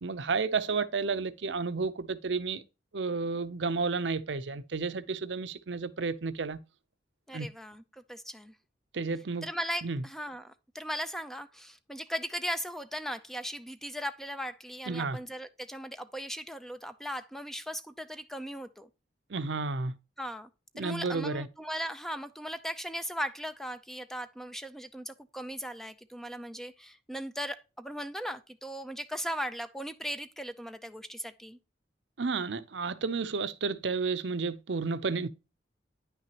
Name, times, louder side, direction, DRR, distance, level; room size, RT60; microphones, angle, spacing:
voice 1, 0.0-2.6 2.9-6.6 7.3-7.5 8.9-9.5 9.8-10.0 14.9-15.2 19.3-19.9 20.8-21.5 32.2-35.3, right 4 dB, 70° right, 0.6 m, -31 dB
voice 2, 7.3-8.5 9.4-18.9 20.2-20.5 20.8-31.6, equal, ahead, 0.5 m, -38 dB
9.9 x 5.9 x 2.9 m
head